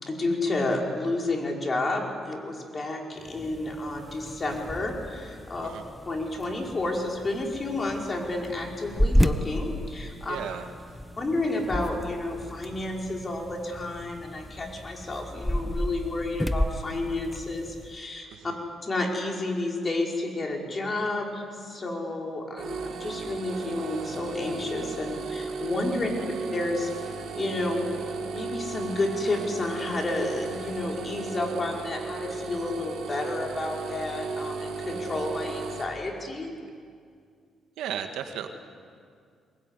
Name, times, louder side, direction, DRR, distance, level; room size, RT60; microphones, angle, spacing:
voice 1, 0.0-5.7 6.0-10.4 11.2-18.5 18.8-26.1 26.5-26.9 27.3-27.9 28.3-36.5, left 2 dB, 30° left, 0 dB, 5.1 m, -31 dB
sound 1, 3.2-18.0, equal, 5° left, 0.9 m, -32 dB
voice 2, 10.3-10.7 18.3-18.5 37.8-38.5, right 9 dB, 85° right, 6 dB, 1.7 m, -34 dB
sound 2, 22.6-35.8, right 4 dB, 65° right, 3.3 m, -35 dB
22.5 x 20.5 x 9.9 m, 2.2 s
cardioid pair, 90°, 0 cm